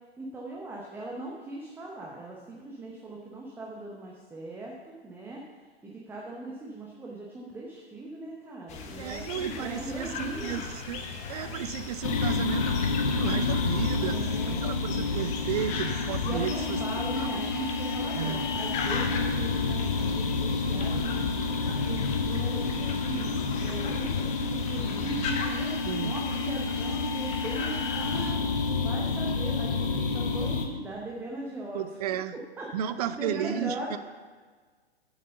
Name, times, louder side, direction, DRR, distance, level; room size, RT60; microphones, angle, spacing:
voice 1, 0.2-5.4 5.8-10.6 13.9-14.8 16.2-21.2 21.6-23.3 23.6-25.8 26.0-28.4 28.8-31.8 32.6-32.7 33.0-34.0, right 2 dB, 5° right, -3 dB, 0.8 m, -39 dB
sound 1, 8.7-28.3, left 4 dB, 20° left, 0.9 m, -38 dB
voice 2, 9.0-12.8 13.1-16.8 17.2-17.4 18.2-18.5 25.8-26.2 31.7-32.4 32.7-34.0, right 9 dB, 40° right, 13 dB, 0.5 m, -33 dB
sound 2, 12.0-30.7, left 4 dB, 55° left, 1.1 m, -29 dB
7.2 x 7.1 x 6.6 m, 1.5 s
figure-of-eight pair, 110°, 32 cm